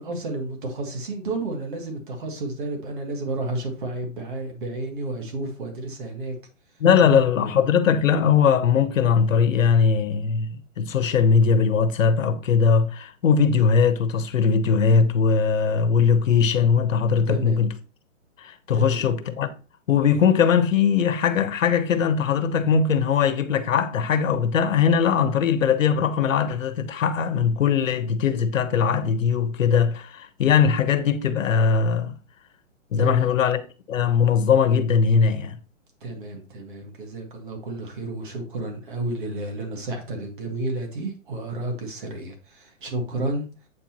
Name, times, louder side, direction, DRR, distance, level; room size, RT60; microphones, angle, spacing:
voice 1, 0.0-6.4 7.4-7.5 17.3-17.6 18.7-19.0 33.0-33.4 36.0-43.5, right 2 dB, 40° right, 1.8 m, -31 dB
voice 2, 6.8-17.7 18.4-19.5 19.9-32.1 32.9-33.6 33.9-35.6, left 6 dB, 80° left, 1.2 m, -20 dB
8.3 x 4.5 x 3.0 m
hypercardioid pair, 180°, 39 cm